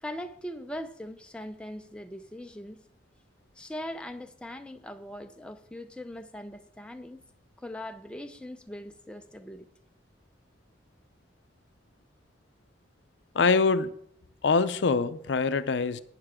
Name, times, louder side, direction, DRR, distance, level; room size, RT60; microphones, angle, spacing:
voice 1, 0.0-2.8 3.6-7.2 7.6-9.7, left 1 dB, 5° left, 0.5 m, -40 dB
voice 2, 13.3-13.9 14.4-16.0, left 4 dB, 70° left, 0.5 m, -24 dB
11.5 x 9.7 x 3.6 m
head